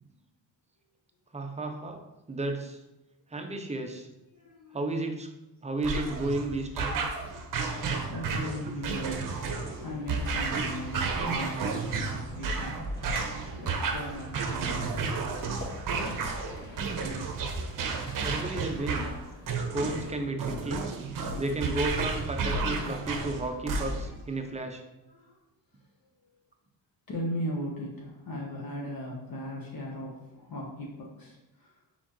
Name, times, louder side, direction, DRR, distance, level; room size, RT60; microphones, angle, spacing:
voice 1, 1.3-2.8 3.3-4.1 4.7-5.3 5.6-7.0 8.7-8.8 18.2-19.1 19.5-20.9 21.4-24.8, right 2 dB, 15° right, 5 dB, 0.5 m, -33 dB
voice 2, 4.3-4.8 7.2-7.7 8.0-12.8 13.5-15.3 20.7-21.4 24.1-24.2 24.5-24.7 25.1-25.4 25.8-25.9 26.2-26.4 27.1-31.8, equal, 50° left, -2 dB, 1.1 m, -39 dB
sound 1, 5.8-24.2, right 4 dB, 45° right, 0.7 m, -32 dB
sound 2, 8.9-20.1, left 1 dB, 20° left, 1.4 m, -47 dB
4.2 x 3.8 x 3.0 m, 0.95 s
cardioid pair, 95°, 45 cm